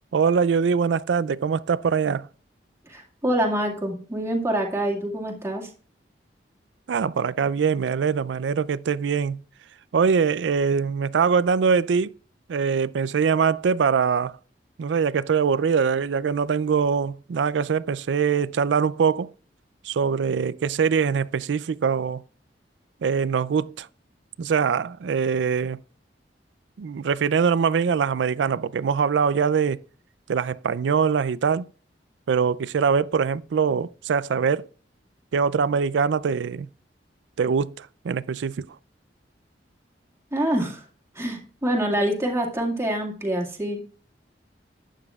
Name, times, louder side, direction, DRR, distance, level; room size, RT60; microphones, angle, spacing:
voice 1, 0.1-2.3 6.9-9.4 9.9-12.1 12.5-14.4 14.8-19.3 19.8-22.2 23.0-23.9 24.4-25.8 26.8-29.8 30.3-31.7 32.3-34.7 35.3-36.7 37.4-38.8, right 6 dB, 85° right, 0.4 m, -23 dB
voice 2, 2.9-5.7 40.3-40.8 41.2-43.8, right 1 dB, 15° right, 2.0 m, -26 dB
12.0 x 9.1 x 2.3 m
head